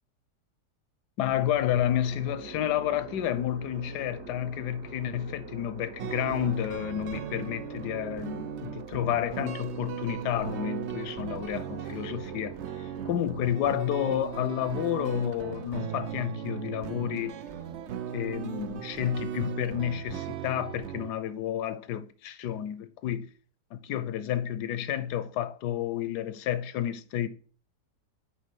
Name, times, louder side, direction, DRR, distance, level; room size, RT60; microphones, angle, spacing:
voice 1, 1.2-17.4 18.1-23.3 23.7-27.3, left 11 dB, 75° left, 1.2 m, -30 dB
sound 1, 1.3-20.7, right 5 dB, 45° right, 1.2 m, -46 dB
sound 2, 6.0-21.1, right 9 dB, 80° right, 0.6 m, -38 dB
8.8 x 3.4 x 5.2 m
omnidirectional pair, 1.8 m